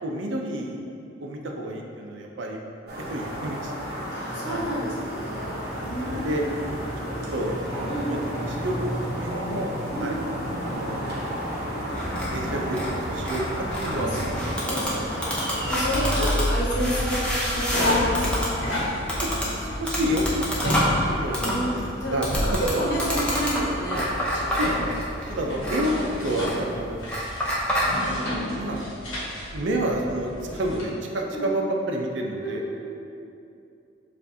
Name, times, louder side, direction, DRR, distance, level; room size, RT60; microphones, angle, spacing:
voice 1, 0.0-0.8 1.2-2.6 3.0-4.0 4.4-4.7 5.6-6.4 7.0-9.7 10.0-10.2 10.6-11.2 11.9-12.8 13.0-14.3 14.6-15.1 16.0-16.3 16.9-17.1 19.2-21.8 22.1-22.8 23.9-24.1 24.5-25.0 25.3-27.0 28.0-28.3 28.5-28.9 29.5-32.6, right 1 dB, 70° right, 1 dB, 0.5 m, -30 dB
sound 1, 2.9-16.3, equal, 50° right, 0.9 m, -32 dB
voice 2, 4.1-6.4 7.9-8.1 9.9-10.1 13.7-18.7 21.3-22.5 22.7-24.0 24.3-24.8 25.3-25.7 31.3-31.5 32.4-32.8, equal, 60° left, -6 dB, 1.1 m, -31 dB
sound 2, 11.9-27.9, equal, 5° left, 0.6 m, -29 dB
sound 3, 15.6-30.8, left 1 dB, 90° left, 1.1 m, -30 dB
6.8 x 2.5 x 2.7 m, 2.6 s
head